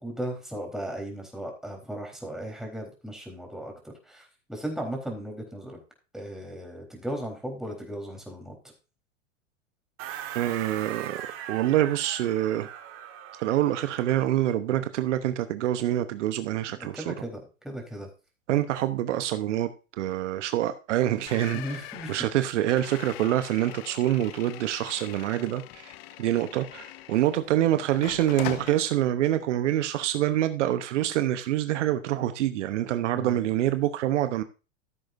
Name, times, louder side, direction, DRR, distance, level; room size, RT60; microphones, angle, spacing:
voice 1, 0.0-5.8 6.1-8.5 16.7-17.4 17.6-18.1 21.5-22.1 33.1-33.4, right 1 dB, ahead, 4.0 m, -36 dB
sound 1, 10.0-14.4, right 10 dB, 35° right, 1.7 m, -40 dB
voice 2, 10.3-11.2 11.5-12.7 13.4-17.1 18.5-19.7 20.0-21.6 22.1-25.9 26.2-34.4, right 13 dB, 65° right, 1.0 m, -26 dB
sound 2, 21.3-27.5 27.9-28.8, left 14 dB, 55° left, 1.0 m, -41 dB
15.0 x 7.8 x 2.6 m
hypercardioid pair, 115°, 38 cm